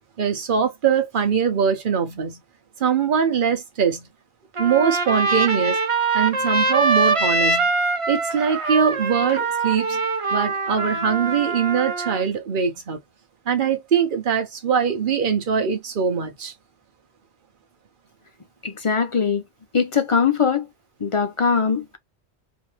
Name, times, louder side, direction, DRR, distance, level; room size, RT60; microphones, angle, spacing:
voice 1, 0.2-2.4 2.8-4.1 4.6-5.8 6.1-7.7 8.1-10.0 10.3-13.0 13.5-16.5, right 7 dB, 55° right, 1.1 m, -22 dB
Trumpet, 4.5-12.2, right 3 dB, 35° right, 0.8 m, -23 dB
voice 2, 18.6-19.4 19.7-20.7 21.0-22.0, left 6 dB, 40° left, 0.5 m, -21 dB
3.3 x 2.9 x 3.3 m
omnidirectional pair, 1.1 m